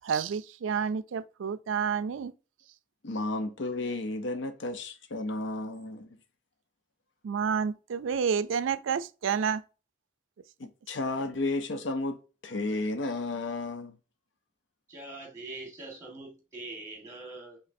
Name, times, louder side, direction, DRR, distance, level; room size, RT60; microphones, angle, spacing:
voice 1, 0.0-2.3 7.2-9.6, right 6 dB, 90° right, 0.4 m, -29 dB
voice 2, 3.0-6.1 10.6-14.0, left 2 dB, 80° left, 0.7 m, -33 dB
voice 3, 14.9-17.6, right 2 dB, 15° right, 1.5 m, -43 dB
5.1 x 3.1 x 2.6 m
head